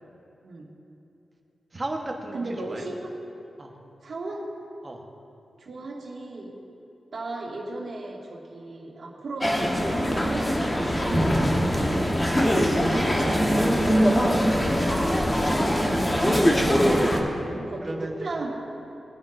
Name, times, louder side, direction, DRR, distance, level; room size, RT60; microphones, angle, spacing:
voice 1, 1.7-2.9 3.6-3.8 4.8-5.1 12.6-14.3 17.8-18.3, right 2 dB, 25° right, 1 dB, 1.1 m, -36 dB
voice 2, 2.3-3.1 4.0-4.4 5.6-6.6 7.1-12.2 17.6-18.5, right 2 dB, 55° right, -3 dB, 2.0 m, -36 dB
sound 1, 9.4-17.2, equal, 15° left, 1.2 m, -22 dB
21.0 x 10.0 x 2.6 m, 2.9 s
wide cardioid pair, 170°, 0 cm